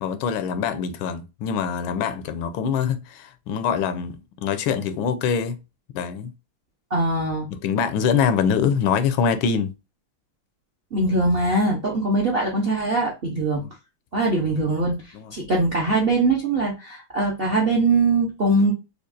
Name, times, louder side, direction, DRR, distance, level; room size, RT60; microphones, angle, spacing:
voice 1, 0.0-5.6 5.9-6.3 7.5-9.7 13.5-13.7 15.1-15.3, left 7 dB, 85° left, 1.4 m, -24 dB
voice 2, 6.9-7.5 10.9-13.6 14.1-15.0 15.3-18.7, right 2 dB, 60° right, 0.6 m, -22 dB
5.1 x 2.4 x 2.5 m
omnidirectional pair, 2.2 m